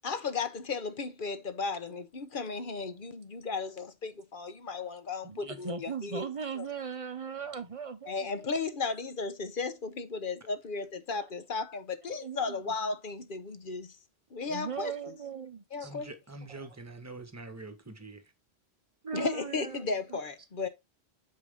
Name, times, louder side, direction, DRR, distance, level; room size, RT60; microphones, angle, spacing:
voice 1, 0.0-6.3 6.6-6.7 8.1-13.9 14.3-14.9 15.7-16.1 19.1-20.7, left 4 dB, 55° left, 1.0 m, -35 dB
voice 2, 5.2-8.5 12.0-12.6 14.5-15.9 19.0-20.2, right 6 dB, 35° right, 0.8 m, -39 dB
voice 3, 15.8-18.3, right 2 dB, 15° right, 1.2 m, -45 dB
7.5 x 4.9 x 3.6 m
omnidirectional pair, 1.1 m